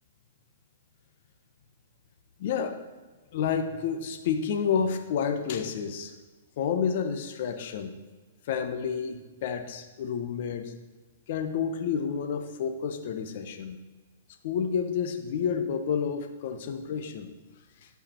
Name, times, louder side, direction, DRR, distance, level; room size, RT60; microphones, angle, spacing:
voice 1, 2.4-2.8 3.3-6.1 6.6-8.0 8.5-10.7 11.3-13.8 14.4-17.3, left 7 dB, 50° left, 7 dB, 1.0 m, -30 dB
12.0 x 4.9 x 4.5 m, 1.3 s
hypercardioid pair, 150°, 0 cm